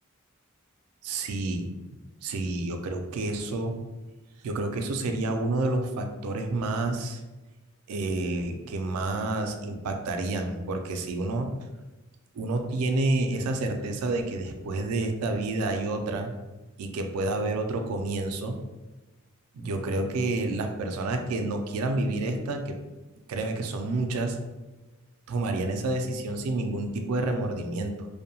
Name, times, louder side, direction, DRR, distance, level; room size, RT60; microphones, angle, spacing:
voice 1, 1.0-1.7 2.2-3.8 4.4-7.2 7.9-11.5 12.3-16.3 16.8-18.6 19.5-22.8 23.3-24.4 25.3-28.1, right 2 dB, 85° right, 4 dB, 0.4 m, -29 dB
2.6 x 2.1 x 2.7 m, 1.1 s
head